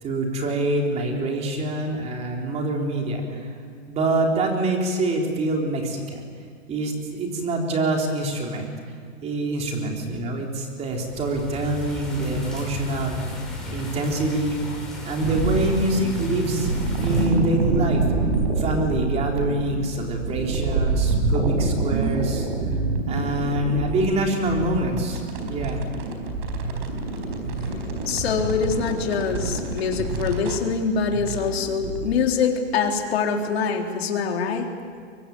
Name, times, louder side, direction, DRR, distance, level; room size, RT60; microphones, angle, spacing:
voice 1, 0.0-3.5 3.9-6.3 6.7-8.7 9.2-13.2 13.7-14.6 15.0-16.7 17.0-18.0 18.6-22.5 23.1-25.2 25.5-25.8, right 1 dB, 15° right, 1 dB, 3.7 m, -25 dB
sound 1, 10.7-17.3, left 2 dB, ahead, 5.7 m, -34 dB
sound 2, 15.2-32.2, right 3 dB, 45° right, 4.4 m, -26 dB
voice 2, 28.0-34.7, left 6 dB, 55° left, 2 dB, 3.9 m, -24 dB
24.0 x 24.0 x 9.5 m, 2.1 s
hypercardioid pair, 155°, 37 cm